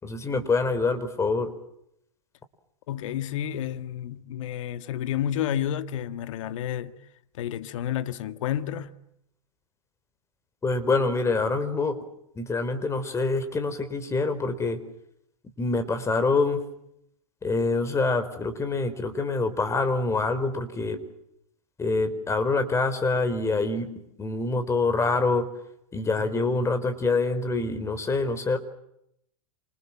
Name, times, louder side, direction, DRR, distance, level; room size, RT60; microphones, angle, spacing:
voice 1, 0.0-1.5 10.6-12.0 12.4-14.8 15.6-16.6 17.4-21.0 21.8-23.9 24.2-25.5 25.9-28.6, left 3 dB, 15° left, 4.6 m, -25 dB
voice 2, 2.9-7.0 7.4-8.9, left 10 dB, 65° left, 1.8 m, -30 dB
28.5 x 28.0 x 7.5 m
hypercardioid pair, 110°, 18 cm